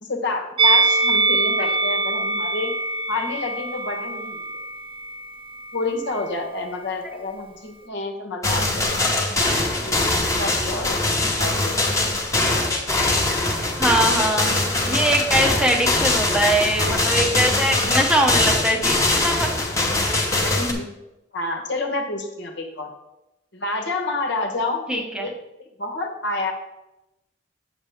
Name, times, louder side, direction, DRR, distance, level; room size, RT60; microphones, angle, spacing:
voice 1, 0.0-2.7 3.1-4.6 5.7-11.9 20.6-20.9 21.3-22.9 23.5-25.3 25.6-26.5, left 3 dB, 65° left, 3 dB, 1.2 m, -29 dB
Musical instrument, 0.6-5.8 6.1-6.3, right 3 dB, 30° right, 0.4 m, -23 dB
sound 1, 8.4-20.7, left 2 dB, 15° left, 1.0 m, -22 dB
voice 2, 13.8-14.5 14.8-19.5 24.9-25.3, right 1 dB, 5° right, 2 dB, 0.7 m, -21 dB
7.9 x 6.8 x 3.5 m, 0.93 s
head